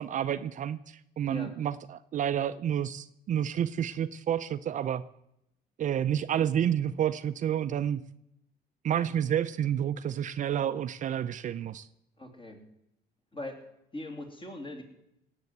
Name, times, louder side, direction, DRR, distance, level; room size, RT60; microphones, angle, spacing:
voice 1, 0.0-5.0 5.8-8.0 8.8-11.9, right 9 dB, 50° right, 12 dB, 0.5 m, -30 dB
voice 2, 12.2-12.6 13.3-13.6 13.9-14.8, left 1 dB, 30° left, 3 dB, 3.2 m, -40 dB
18.0 x 7.8 x 8.1 m, 0.82 s
cardioid pair, 110°, 17 cm